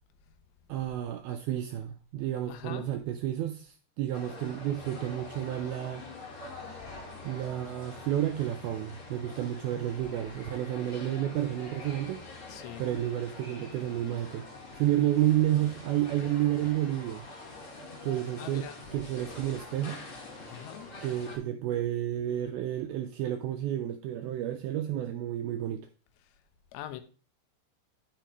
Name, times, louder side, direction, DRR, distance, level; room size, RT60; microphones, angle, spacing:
voice 1, 0.7-6.0 7.2-12.2 12.8-17.3 18.0-20.0 21.0-25.9, right 12 dB, 85° right, 2.2 m, -31 dB
voice 2, 2.5-2.9 12.5-12.8 18.4-18.8 20.5-20.9 26.7-27.0, left 12 dB, 85° left, 3.0 m, -42 dB
sound 1, 4.1-21.4, left 3 dB, 40° left, 2.0 m, -45 dB
10.0 x 6.6 x 3.1 m
omnidirectional pair, 5.0 m